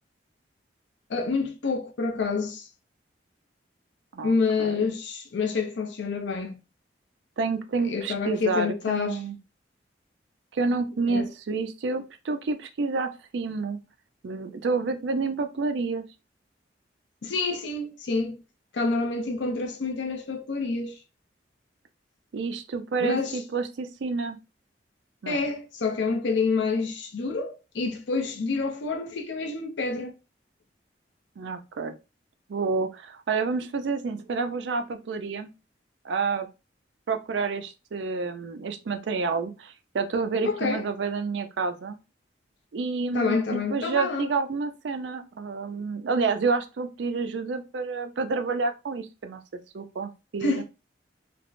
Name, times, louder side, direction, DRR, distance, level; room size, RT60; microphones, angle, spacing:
voice 1, 1.1-2.7 4.2-6.6 7.8-9.2 11.1-11.3 17.2-18.4 18.7-20.9 23.0-23.4 25.3-30.1 40.4-40.9 43.1-44.3 50.4-50.6, left 4 dB, 75° left, 0.5 m, -28 dB
voice 2, 7.4-9.4 10.5-13.8 14.2-16.0 22.3-24.4 25.2-25.4 31.4-32.0 32.5-35.5 36.0-36.5 37.1-42.0 42.7-49.4 49.7-50.6, right 4 dB, 75° right, 0.4 m, -29 dB
3.3 x 2.0 x 2.4 m
head